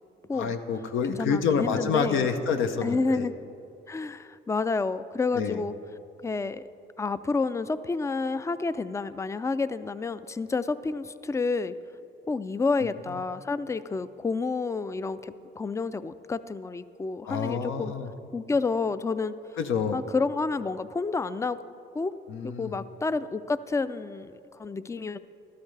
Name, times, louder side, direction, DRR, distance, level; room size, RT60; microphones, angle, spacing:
voice 1, 0.3-3.3 5.3-5.6 17.3-18.1 19.6-20.0 22.3-22.7, left 6 dB, 80° left, 7 dB, 0.8 m, -28 dB
voice 2, 1.0-2.3 2.8-3.3 3.9-5.7 6.2-6.6 7.0-11.8 12.3-17.9 18.3-19.3 19.9-21.6 21.9-22.1 22.4-25.2, left 4 dB, 15° left, 15 dB, 0.3 m, -29 dB
14.0 x 12.5 x 3.3 m, 2.7 s
cardioid pair, 90°, 20 cm